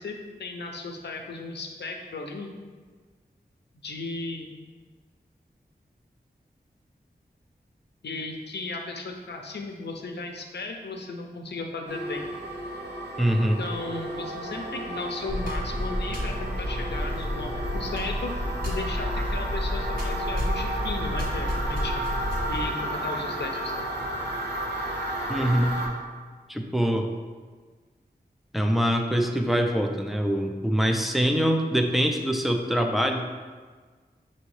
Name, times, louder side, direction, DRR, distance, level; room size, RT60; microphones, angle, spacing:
voice 1, 0.0-2.5 3.7-4.5 8.0-12.3 13.6-18.3 18.6-22.0 22.5-23.8, left 3 dB, 85° left, 2 dB, 0.6 m, -35 dB
sound 1, 11.9-25.9, right 1 dB, 90° right, 0.7 m, -33 dB
voice 2, 13.2-13.6 25.3-25.8 26.5-27.1 28.5-33.3, equal, ahead, 4 dB, 0.4 m, -24 dB
sound 2, 15.3-22.6, left 1 dB, 55° right, 1.4 m, -30 dB
6.0 x 2.8 x 3.2 m, 1.5 s
wide cardioid pair, 60°, 17 cm